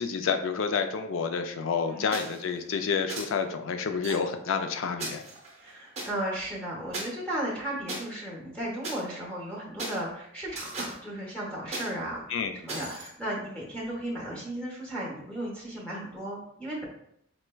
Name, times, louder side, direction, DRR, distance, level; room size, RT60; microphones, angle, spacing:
voice 1, 0.0-5.2 12.3-12.5, left 5 dB, 70° left, 7 dB, 0.3 m, -29 dB
sound 1, 2.1-2.4 3.1-3.3 4.0-4.1 5.0-6.1 6.9-7.0 7.9-8.0 8.8-9.0 9.8-10.0 10.5-11.0 11.7-11.9 12.7-13.1, right 2 dB, 30° right, 0.6 m, -36 dB
voice 2, 5.6-16.9, right 1 dB, 5° left, -6 dB, 0.8 m, -35 dB
4.3 x 2.1 x 2.2 m, 0.74 s
head